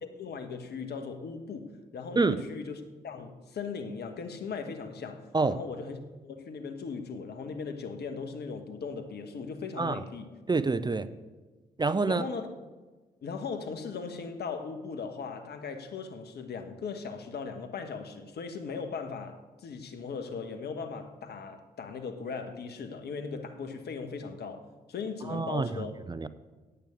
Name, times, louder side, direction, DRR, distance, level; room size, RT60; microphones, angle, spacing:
voice 1, 0.0-10.3 12.1-12.5 13.2-25.9, left 5 dB, 60° left, 1.4 m, -38 dB
voice 2, 10.5-11.1 11.8-12.2 25.3-25.7 26.1-26.3, right 3 dB, 25° right, 0.6 m, -27 dB
9.1 x 8.4 x 8.5 m
hypercardioid pair, 40°, 19 cm